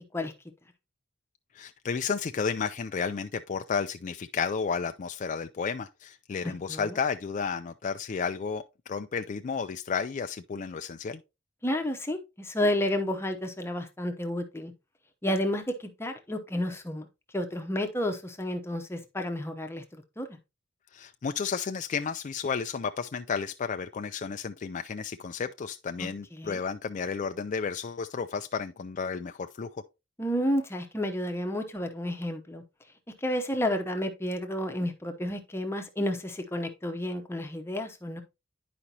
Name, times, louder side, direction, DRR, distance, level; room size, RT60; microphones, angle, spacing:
voice 1, 1.5-11.2 20.9-29.8, left 5 dB, 40° left, 0.4 m, -32 dB
voice 2, 6.4-7.0 11.6-14.7 15.2-17.1 17.3-19.8 20.2-20.4 26.0-26.1 26.4-26.6 30.2-32.6 33.2-38.2, left 1 dB, 10° left, 0.9 m, -31 dB
9.7 x 5.0 x 2.8 m
head